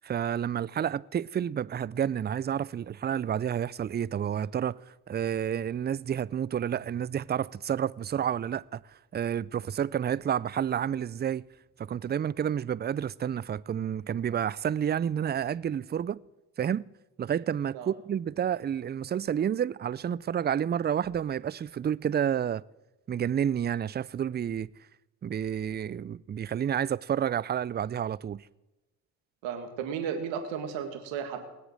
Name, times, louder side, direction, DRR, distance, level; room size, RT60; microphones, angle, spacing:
voice 1, 0.0-8.8 9.1-11.5 11.8-16.2 16.6-16.8 17.2-22.6 23.1-24.7 25.2-28.5, right 9 dB, 25° right, 0.4 m, -30 dB
voice 2, 29.4-31.4, right 7 dB, 80° right, 2.1 m, -34 dB
20.0 x 8.0 x 6.5 m
hypercardioid pair, 55°, 44 cm